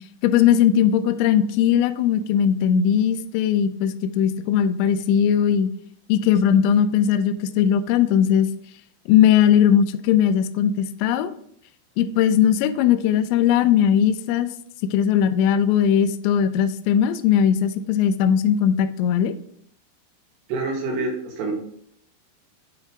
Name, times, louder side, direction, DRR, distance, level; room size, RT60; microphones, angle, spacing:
voice 1, 0.2-5.7 6.1-8.5 9.1-11.3 12.0-14.5 14.9-19.4, left 9 dB, 85° left, 10 dB, 2.6 m, -19 dB
voice 2, 20.5-21.5, right 3 dB, 70° right, 0 dB, 3.3 m, -26 dB
9.0 x 4.6 x 3.6 m, 0.66 s
omnidirectional pair, 5.7 m